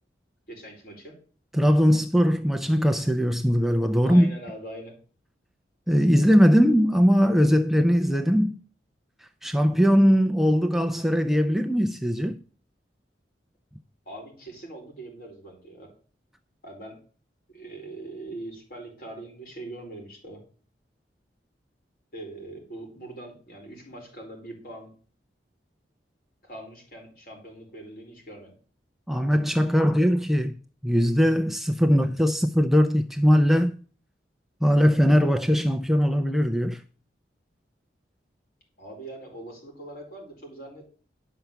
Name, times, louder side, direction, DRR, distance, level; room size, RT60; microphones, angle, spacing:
voice 1, 0.5-1.2 4.0-4.9 14.1-15.9 16.6-17.0 17.5-20.4 22.1-24.9 26.4-28.5 38.8-40.9, right 1 dB, 55° left, 4.3 m, -42 dB
voice 2, 1.5-4.3 5.9-8.6 9.4-12.4 29.1-30.5 30.8-33.8 34.6-36.8, equal, ahead, 0.4 m, -20 dB
11.0 x 5.7 x 6.8 m
head